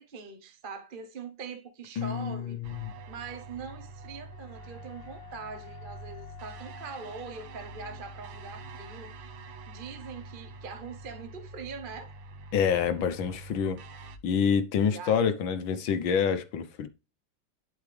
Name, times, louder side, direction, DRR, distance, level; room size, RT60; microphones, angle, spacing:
voice 1, 0.0-2.6 3.1-9.1 9.7-12.1 14.8-15.2, right 5 dB, 35° right, 0.9 m, -42 dB
voice 2, 2.0-2.9 12.5-13.8 14.2-16.9, left 7 dB, 80° left, 1.7 m, -27 dB
sound 1, 2.6-14.2, right 2 dB, 90° right, 1.7 m, -46 dB
Wind instrument woodwind instrument, 4.3-9.8, left 9 dB, 50° left, 2.7 m, -53 dB
11.5 x 4.9 x 3.3 m
omnidirectional pair, 2.1 m